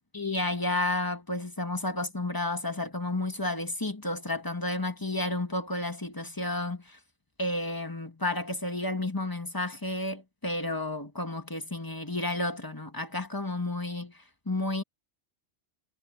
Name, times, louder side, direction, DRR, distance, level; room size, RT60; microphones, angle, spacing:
voice 1, 0.1-7.0 7.4-14.8, left 2 dB, 15° left, 1.7 m, -31 dB
omnidirectional pair, 1.3 m